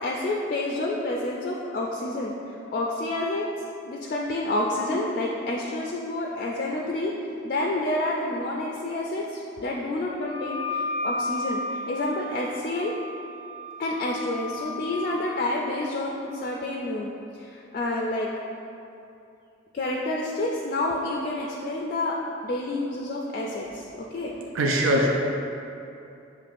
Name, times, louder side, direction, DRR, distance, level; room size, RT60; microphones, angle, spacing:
voice 1, 0.0-3.5 3.9-7.1 7.4-12.9 13.8-17.1 17.4-18.3 19.7-22.2 22.4-23.9 24.1-24.3, left 2 dB, 45° left, -2 dB, 0.3 m, -29 dB
Wind instrument woodwind instrument, 10.3-15.2, left 2 dB, 60° right, 1.2 m, -33 dB
voice 2, 24.5-25.1, right 1 dB, 85° right, 0 dB, 0.5 m, -21 dB
6.8 x 3.1 x 2.5 m, 2.7 s
head